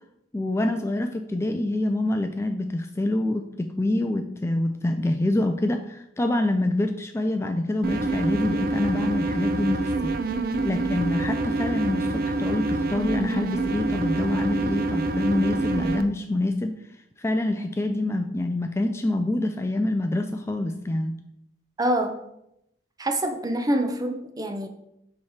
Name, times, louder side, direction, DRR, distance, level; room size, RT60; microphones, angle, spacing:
voice 1, 0.3-10.1 10.6-16.8 17.2-21.1, left 1 dB, 15° left, 6 dB, 0.3 m, -26 dB
sound 1, 7.8-16.0, right 2 dB, 55° right, 0.5 m, -26 dB
voice 2, 21.8-22.2 23.0-24.7, right 1 dB, 20° right, 5 dB, 0.7 m, -25 dB
7.2 x 3.2 x 5.7 m, 0.80 s
head